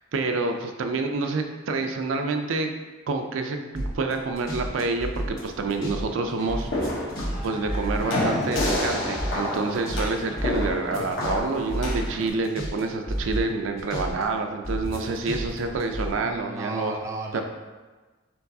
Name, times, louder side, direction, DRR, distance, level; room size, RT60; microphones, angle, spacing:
voice 1, 0.1-2.7 3.1-6.7 7.4-16.9 17.3-17.4, right 3 dB, 90° right, 5 dB, 0.4 m, -28 dB
sound 1, 3.7-6.0 6.3-8.9 9.1-12.8 13.1-14.2 14.6-16.1, equal, 50° left, 1.3 m, -31 dB
sound 2, 6.4-12.3, left 1 dB, 75° left, 1.0 m, -29 dB
voice 2, 16.2-17.4, right 2 dB, 15° right, 1 dB, 0.4 m, -34 dB
4.5 x 3.9 x 2.7 m, 1.3 s
head